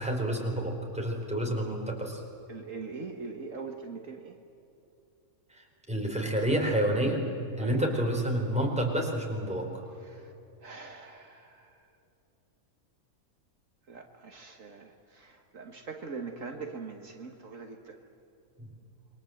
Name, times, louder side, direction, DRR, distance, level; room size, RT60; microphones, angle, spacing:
voice 1, 0.0-2.2 5.5-7.2 7.6-9.8 18.6-18.7, right 1 dB, 5° right, 0 dB, 4.4 m, -29 dB
voice 2, 2.5-4.4 7.6-7.9 10.0-10.3 10.6-11.8 13.9-18.0, right 4 dB, 65° right, 4 dB, 1.8 m, -42 dB
27.5 x 23.0 x 8.0 m, 2.9 s
omnidirectional pair, 1.5 m